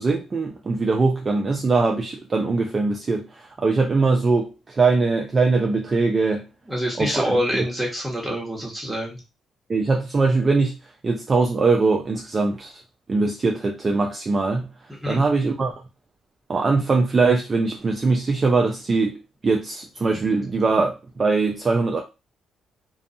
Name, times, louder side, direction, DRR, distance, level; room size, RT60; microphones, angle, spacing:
voice 1, 0.0-6.5 7.0-7.3 9.7-10.7 11.0-12.8 13.1-14.7 15.1-15.7 16.5-22.0, right 3 dB, 35° right, 0.4 m, -21 dB
voice 2, 6.7-9.2 14.9-15.2, equal, 10° right, 1.2 m, -26 dB
2.5 x 2.3 x 2.6 m
cardioid pair, 90°, 0 cm